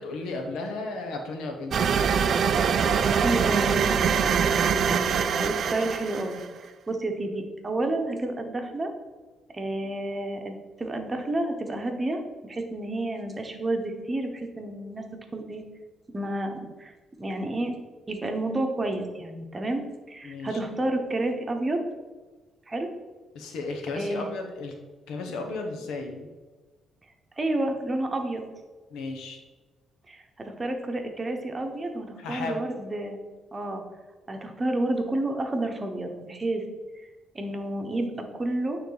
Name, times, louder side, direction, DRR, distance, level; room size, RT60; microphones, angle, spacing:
voice 1, 0.0-1.9 20.2-20.6 23.3-24.7 25.1-26.3 28.9-29.4 32.2-32.7, left 3 dB, 90° left, 4 dB, 1.0 m, -34 dB
sound 1, 1.7-6.5, right 6 dB, 60° right, 0.4 m, -23 dB
voice 2, 2.7-6.4 6.9-8.9 9.5-15.0 15.3-15.6 16.1-16.9 17.2-17.7 18.1-21.8 22.7-22.9 24.0-24.3 27.4-28.4 30.1-33.2 33.5-33.8 34.3-36.6 37.3-38.8, right 2 dB, 25° right, 4 dB, 1.0 m, -30 dB
9.4 x 3.4 x 4.0 m, 1.3 s
cardioid pair, 90°, 0 cm